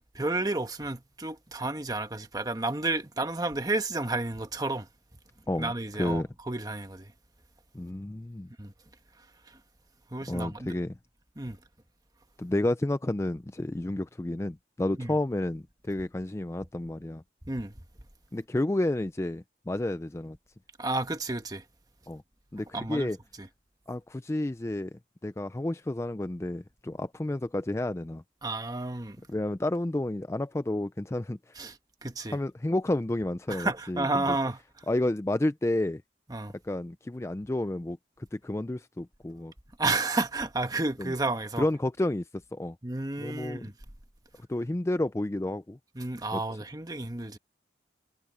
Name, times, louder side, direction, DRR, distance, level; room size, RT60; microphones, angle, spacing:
voice 1, 0.1-4.9 5.6-7.1 8.6-8.7 9.2-9.6 10.1-10.8 11.4-11.6 15.0-15.1 17.5-17.8 20.8-21.6 22.7-23.1 23.4-23.5 28.4-29.2 31.5-32.4 33.5-34.6 36.3-36.5 39.8-41.7 42.8-43.7 45.9-47.4, right 2 dB, 20° right, 1.3 m, -31 dB
voice 2, 7.7-8.5 10.3-10.9 12.4-17.2 18.3-20.4 22.1-22.2 22.5-23.2 23.9-24.9 25.2-28.2 29.3-31.4 32.3-34.4 34.9-36.0 36.6-39.5 41.0-41.1 41.6-42.2 42.5-42.8 43.2-43.6 44.5-45.8 46.3-46.4, left 1 dB, 15° left, 0.4 m, -30 dB
head